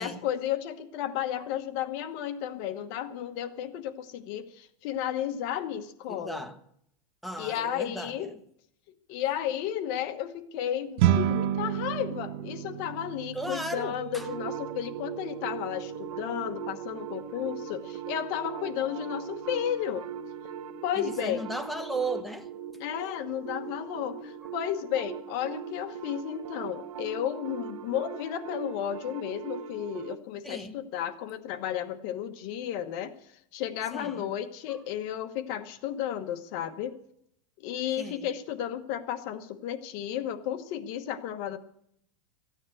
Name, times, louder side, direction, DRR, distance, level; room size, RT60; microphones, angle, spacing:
voice 1, 0.0-6.4 7.4-8.3 9.1-20.1 20.8-21.4 22.8-33.1 33.5-36.9 37.6-41.6, left 10 dB, 45° left, 1.1 m, -33 dB
voice 2, 6.1-6.6 7.2-8.4 13.3-14.3 21.0-22.5 30.4-30.8 33.9-34.3 34.7-34.8 38.0-38.3, right 1 dB, ahead, 1.0 m, -36 dB
sound 1, 11.0-20.5, right 11 dB, 45° right, 0.8 m, -33 dB
sound 2, 13.9-28.9, right 14 dB, 30° right, 4.1 m, -50 dB
sound 3, 14.2-30.2, right 8 dB, 70° right, 1.2 m, -40 dB
14.5 x 9.6 x 7.9 m
supercardioid pair, 155°, 18 cm